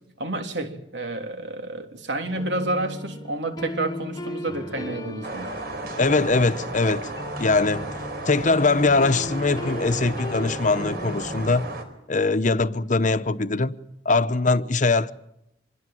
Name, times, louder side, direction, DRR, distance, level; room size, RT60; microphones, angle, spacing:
voice 1, 0.2-5.5, right 2 dB, 80° right, 3.5 m, -30 dB
sound 1, 2.2-11.7, left 1 dB, 25° left, 1.3 m, -37 dB
sound 2, 5.2-11.8, right 2 dB, 60° right, 4.4 m, -34 dB
voice 2, 6.0-7.1 7.4-7.9 8.3-11.7 12.1-13.7 14.0-15.1, left 3 dB, 45° left, 1.0 m, -22 dB
26.0 x 21.5 x 7.8 m
head